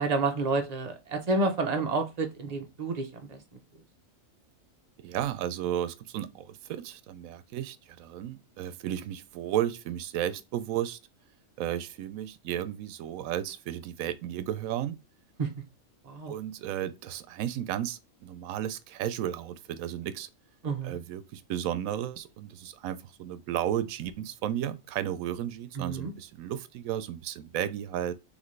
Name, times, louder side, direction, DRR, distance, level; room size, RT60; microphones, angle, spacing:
voice 1, 0.0-3.4 15.4-15.5 16.1-16.3 20.6-21.0 25.8-26.1, right 3 dB, 35° right, 0.8 m, -29 dB
voice 2, 5.0-11.0 11.6-15.0 16.3-20.3 20.8-28.1, right 11 dB, 85° right, 1.0 m, -33 dB
4.0 x 3.4 x 3.1 m
omnidirectional pair, 1.4 m